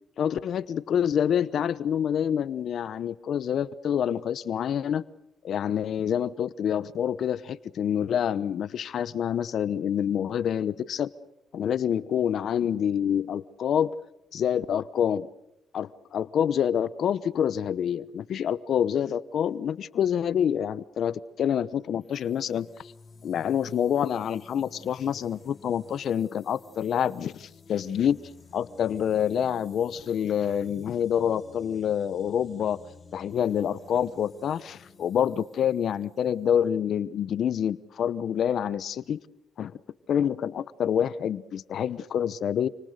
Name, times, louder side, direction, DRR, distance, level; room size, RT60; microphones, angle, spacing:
voice 1, 0.2-5.0 5.4-11.1 11.5-14.0 14.3-15.3 15.7-22.9 23.2-28.2 28.5-32.8 33.1-39.2 39.6-39.7 40.1-42.7, left 9 dB, 65° left, 17 dB, 0.9 m, -27 dB
sound 1, 22.0-36.7, left 4 dB, 35° left, 4.3 m, -52 dB
29.0 x 26.0 x 6.7 m, 0.86 s
cardioid pair, 90°, 0 cm